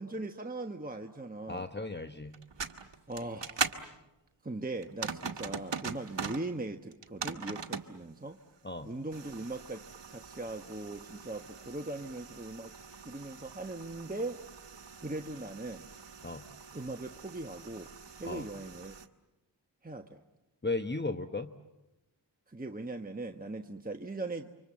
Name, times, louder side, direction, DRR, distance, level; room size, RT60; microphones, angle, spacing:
voice 1, 0.0-1.7 3.1-3.7 4.4-8.4 8.8-9.8 10.1-12.7 13.0-14.4 15.0-15.9 16.7-17.9 18.2-19.0 19.8-20.2 22.5-24.5, right 2 dB, 20° right, 4 dB, 1.3 m, -39 dB
voice 2, 1.5-2.3 8.6-8.9 16.2-16.4 18.2-18.5 20.6-21.5, left 3 dB, 25° left, 7 dB, 1.2 m, -35 dB
sound 1, 2.3-3.8 4.8-6.4 6.9-7.9 9.1-19.1, right 5 dB, 70° right, 1.5 m, -41 dB
29.0 x 25.0 x 7.6 m, 0.99 s
cardioid pair, 45°, 45 cm